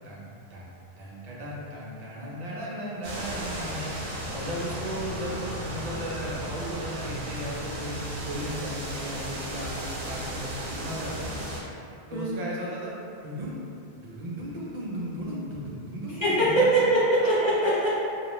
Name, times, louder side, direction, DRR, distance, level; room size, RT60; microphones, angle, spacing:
voice 1, 0.0-8.0 8.2-11.3 12.1-12.9 13.2-13.6 14.0-16.6, equal, 50° right, -5 dB, 0.5 m, -36 dB
sound 1, 3.0-11.6, right 1 dB, 75° right, 0.8 m, -35 dB
voice 2, 12.1-12.4 16.2-17.9, right 1 dB, 50° left, -8 dB, 0.3 m, -22 dB
2.3 x 2.0 x 2.9 m, 2.6 s
omnidirectional pair, 1.1 m